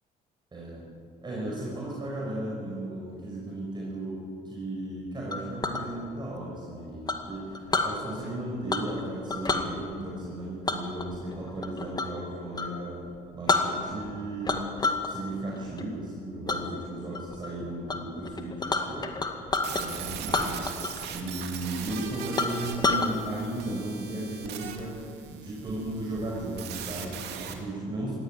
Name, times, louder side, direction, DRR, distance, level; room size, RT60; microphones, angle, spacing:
voice 1, 0.5-0.8 1.2-13.0 13.3-14.6 15.0-19.1 19.6-25.0 25.3-28.1, right 1 dB, 25° right, -4 dB, 5.7 m, -35 dB
Chink clink, 5.3-5.8 7.1-7.9 8.7-9.0 9.3-9.7 10.7-12.2 12.5-12.7 13.1-13.2 13.5-14.1 14.4-15.1 15.5-15.8 16.5-16.6 17.1-17.5 17.9-18.0 18.2-19.8 20.3-21.1 21.3-21.4 21.9-22.0 22.4-23.1, left 3 dB, 25° left, 2.1 m, -28 dB
sound 1, 19.5-27.5, right 8 dB, 80° right, 2.8 m, -39 dB
20.0 x 16.0 x 9.3 m, 2.7 s
cardioid pair, 110°, 17 cm